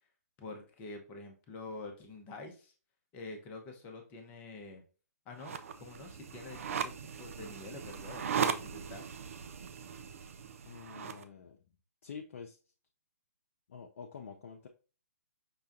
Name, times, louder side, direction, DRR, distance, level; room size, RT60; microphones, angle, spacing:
voice 1, 0.4-2.7 3.1-4.8 5.3-6.9 7.2-9.0, left 3 dB, 20° left, 3 dB, 0.7 m, -47 dB
sound 1, 5.4-11.2, right 7 dB, 55° right, 0.4 m, -38 dB
voice 2, 10.6-11.6 12.0-12.6 13.7-14.7, left 6 dB, 55° left, 3 dB, 0.5 m, -47 dB
5.5 x 2.3 x 2.5 m, 0.36 s
figure-of-eight pair, 135°, 9 cm